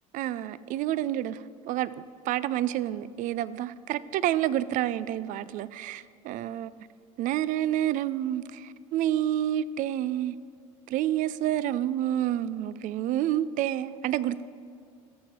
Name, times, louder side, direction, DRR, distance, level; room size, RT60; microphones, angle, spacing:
voice 1, 0.1-6.9 7.2-10.4 10.9-14.4, right 12 dB, 50° right, 0.4 m, -29 dB
13.5 x 7.5 x 4.4 m
hypercardioid pair, 70°, 18 cm